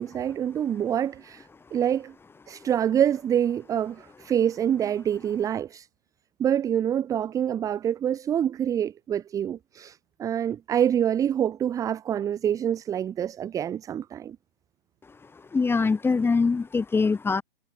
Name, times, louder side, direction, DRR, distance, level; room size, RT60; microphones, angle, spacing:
voice 1, 0.0-2.1 2.5-5.9 6.4-14.4, right 9 dB, 10° right, 0.9 m, -26 dB
voice 2, 15.5-17.4, left 4 dB, 5° left, 3.6 m, -23 dB
figure-of-eight pair, 135°, 31 cm